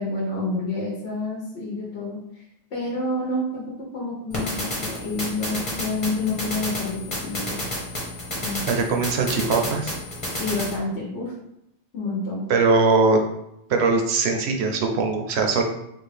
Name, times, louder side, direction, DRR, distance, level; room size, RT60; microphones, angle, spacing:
voice 1, 0.0-2.4 2.7-3.7 3.9-7.6 8.4-8.7 10.4-11.3 11.9-12.5, left 2 dB, 75° left, -3 dB, 1.0 m, -28 dB
sound 1, 4.3-10.8, left 1 dB, 30° left, 1.2 m, -31 dB
voice 2, 8.7-9.9 12.5-13.2 13.7-15.6, right 4 dB, 70° right, 3 dB, 0.8 m, -21 dB
3.8 x 2.3 x 3.3 m, 0.80 s
omnidirectional pair, 1.2 m